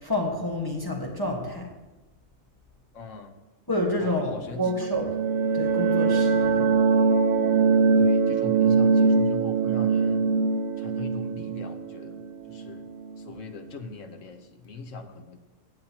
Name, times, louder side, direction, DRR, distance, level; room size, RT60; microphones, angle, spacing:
voice 1, 0.0-1.7 3.7-5.1 5.5-6.7, left 1 dB, 15° left, -1 dB, 1.5 m, -28 dB
voice 2, 3.0-3.3 4.3-4.6 8.0-10.2 10.8-12.1 12.7-12.8 13.3-14.4 14.6-15.4, left 3 dB, 65° left, 6 dB, 1.3 m, -40 dB
sound 1, 4.6-13.2, right 5 dB, 85° right, 1.4 m, -22 dB
16.5 x 9.1 x 2.9 m, 1.1 s
omnidirectional pair, 1.4 m